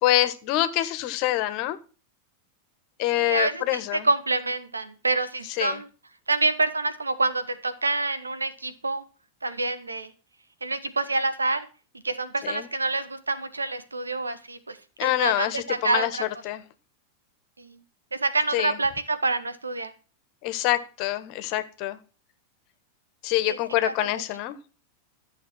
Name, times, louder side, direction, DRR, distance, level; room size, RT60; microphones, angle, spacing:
voice 1, 0.0-1.8 3.0-4.1 5.6-5.8 12.4-12.7 15.0-16.6 18.5-18.8 20.4-22.0 23.2-24.5, left 15 dB, 45° left, 13 dB, 1.6 m, -26 dB
voice 2, 3.1-5.9 6.3-9.0 9.4-10.1 10.6-11.7 12.0-16.1 17.6-17.8 18.1-19.9 23.4-23.6 23.8-23.9, right 3 dB, 80° right, 11 dB, 1.8 m, -27 dB
14.0 x 7.2 x 7.3 m, 0.35 s
figure-of-eight pair, 90°, 0 cm